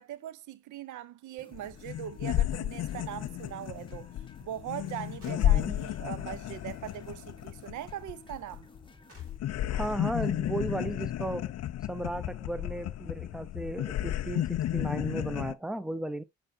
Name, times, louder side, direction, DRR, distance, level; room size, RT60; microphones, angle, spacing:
voice 1, 0.0-4.1 4.4-8.7, right 11 dB, 75° right, 0.6 m, -41 dB
sound 1, 1.4-9.4, left 2 dB, 15° left, 1.2 m, -55 dB
sound 2, 1.5-1.6 1.8-8.9 9.2-15.5, left 13 dB, 55° left, 0.5 m, -32 dB
sound 3, 5.2-6.9 8.5-8.6 9.1-12.1 12.5-12.6 13.1-13.2 14.0-14.2, right 2 dB, 50° right, 4.1 m, -63 dB
voice 2, 5.3-5.8 9.7-11.5 11.9-16.2, right 1 dB, ahead, 0.6 m, -35 dB
7.6 x 5.0 x 2.6 m
cardioid pair, 90°, 30 cm